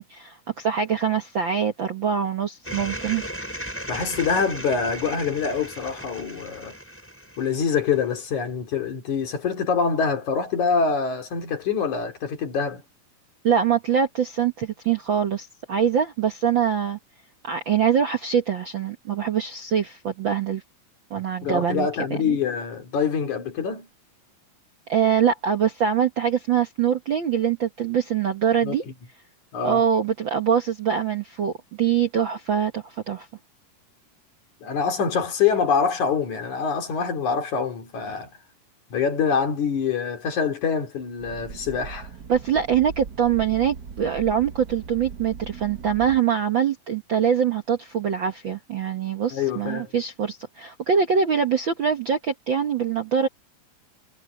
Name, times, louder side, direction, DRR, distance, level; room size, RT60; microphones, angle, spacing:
voice 1, 0.0-3.2 13.4-17.0 17.4-20.6 21.1-21.9 22.3-22.4 24.9-28.8 29.6-31.5 31.8-33.3 42.3-53.3, right 8 dB, 55° right, 1.4 m, -23 dB
sound 1, 2.7-8.1, equal, 5° left, 6.1 m, -36 dB
voice 2, 3.9-6.7 7.4-12.8 21.4-23.9 28.6-28.8 29.5-29.8 34.6-38.3 38.9-42.1 49.3-49.9, left 6 dB, 60° left, 4.1 m, -25 dB
sound 2, 41.2-46.2, right 6 dB, 70° right, 0.9 m, -39 dB
omnidirectional pair, 3.8 m